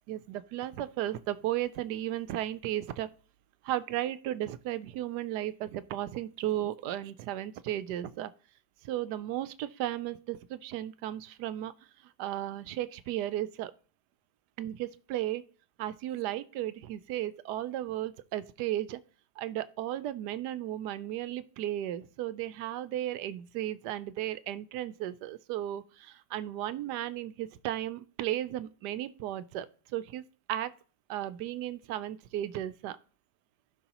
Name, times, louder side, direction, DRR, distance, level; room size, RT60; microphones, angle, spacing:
voice 1, 0.1-3.1 3.6-8.3 8.9-11.7 12.2-13.7 14.6-15.4 15.8-19.0 19.4-29.7 29.9-30.2 30.5-30.7 31.1-33.0, right 13 dB, 80° right, 1.1 m, -35 dB
16.0 x 5.4 x 2.9 m
omnidirectional pair, 1.8 m